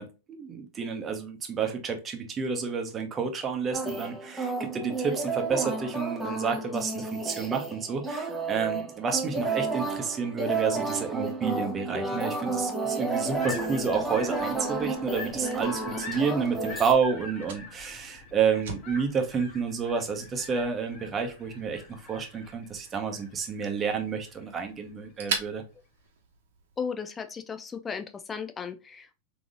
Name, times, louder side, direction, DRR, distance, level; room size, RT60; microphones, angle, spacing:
voice 1, 0.0-25.6, right 6 dB, 25° right, 0.9 m, -30 dB
sound 1, 3.7-16.9, right 3 dB, ahead, 1.1 m, -32 dB
sound 2, 13.3-24.9, left 3 dB, 40° left, 1.4 m, -44 dB
Fire, 15.3-26.8, right 5 dB, 75° right, 1.0 m, -43 dB
voice 2, 26.8-29.2, left 6 dB, 20° left, 0.5 m, -35 dB
3.7 x 3.0 x 2.5 m
hypercardioid pair, 110°, 0 cm